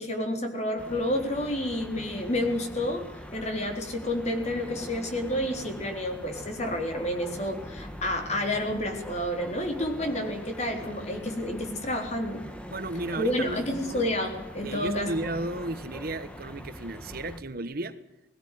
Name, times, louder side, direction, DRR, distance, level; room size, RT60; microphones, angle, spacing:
voice 1, 0.0-3.1 3.3-12.4 13.1-15.1, left 1 dB, 35° left, 4.0 m, -30 dB
sound 1, 0.8-17.4, equal, 5° left, 1.7 m, -43 dB
voice 2, 12.7-14.1 14.6-18.0, right 2 dB, 55° right, 1.3 m, -34 dB
20.0 x 16.5 x 9.4 m
head